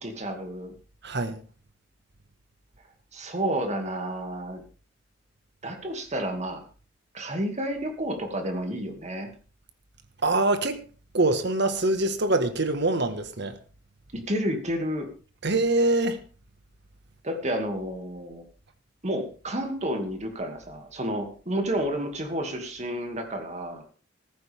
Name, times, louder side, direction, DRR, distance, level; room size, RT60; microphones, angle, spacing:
voice 1, 0.0-0.7 3.1-4.6 5.6-6.6 7.1-9.3 14.1-15.1 17.2-18.4 19.0-23.8, right 1 dB, 35° right, 2.5 m, -30 dB
voice 2, 1.0-1.4 10.2-10.8 11.1-13.6 15.4-16.2, right 2 dB, 65° right, 1.6 m, -24 dB
14.5 x 14.5 x 3.6 m
head